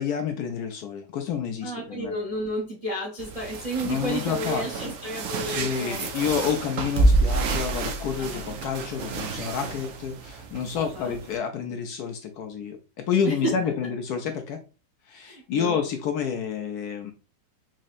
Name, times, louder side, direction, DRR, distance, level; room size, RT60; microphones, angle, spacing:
voice 1, 0.0-2.1 3.8-4.6 5.4-12.8 13.1-14.6 15.1-17.1, left 7 dB, 70° left, 5 dB, 1.0 m, -29 dB
voice 2, 1.6-6.2 8.2-8.5 10.7-11.2 13.2-13.6 15.2-15.8, right 1 dB, 30° right, -3 dB, 0.7 m, -32 dB
sound 1, 3.2-11.4, right 2 dB, 70° right, 0.8 m, -28 dB
4.1 x 2.7 x 2.4 m, 0.33 s
omnidirectional pair, 1.9 m